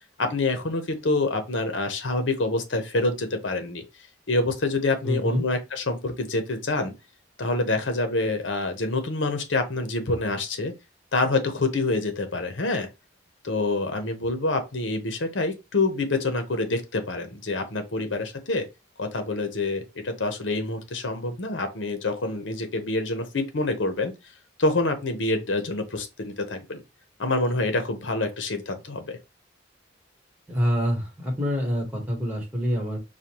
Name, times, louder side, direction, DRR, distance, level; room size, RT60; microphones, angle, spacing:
voice 1, 0.2-3.8 4.3-6.9 7.4-10.7 11.1-12.9 13.4-18.7 19.0-24.1 24.6-26.8 27.2-29.2, left 2 dB, 75° left, 0.9 m, -26 dB
voice 2, 5.0-5.4 30.5-33.0, equal, 10° right, 1.3 m, -26 dB
4.9 x 2.3 x 2.9 m
head